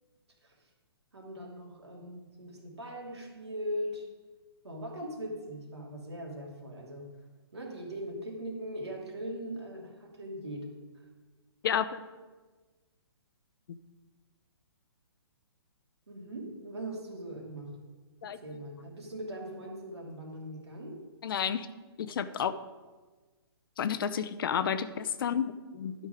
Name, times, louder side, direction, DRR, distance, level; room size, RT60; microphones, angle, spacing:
voice 1, 1.1-4.1 4.6-7.1 7.5-10.7 10.9-11.0 16.1-17.7 18.2-21.0, equal, 90° right, -1 dB, 2.7 m, -40 dB
voice 2, 11.6-12.0 13.7-13.8 18.2-18.4 21.2-21.7 22.0-22.6 23.8-25.9, left 8 dB, 55° left, 13 dB, 0.6 m, -31 dB
11.5 x 5.3 x 4.9 m, 1.3 s
hypercardioid pair, 140°, 14 cm